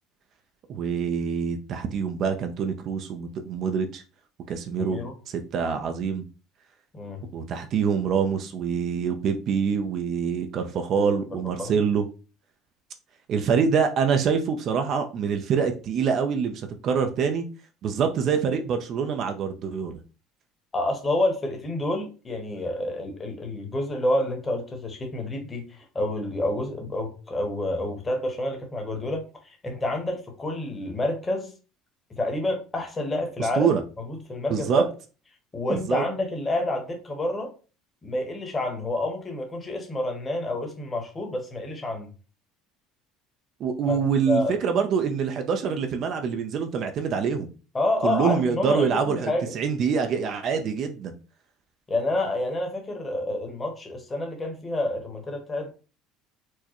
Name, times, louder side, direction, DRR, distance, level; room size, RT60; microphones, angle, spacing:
voice 1, 0.7-4.0 4.5-6.2 7.3-12.1 13.3-17.5 17.8-19.9 33.4-33.8 34.5-34.8 35.7-36.0 43.6-47.5 48.0-51.1, right 6 dB, 50° right, 6 dB, 0.5 m, -25 dB
voice 2, 4.8-5.1 6.9-7.2 11.0-11.1 11.6-11.7 20.7-31.5 32.2-33.7 34.1-34.9 35.5-37.5 38.0-42.1 43.9-44.0 44.3-44.5 47.7-49.5 51.9-55.7, left 1 dB, 20° left, 3 dB, 1.1 m, -28 dB
4.5 x 2.1 x 2.9 m, 0.35 s
supercardioid pair, 105°, 0 cm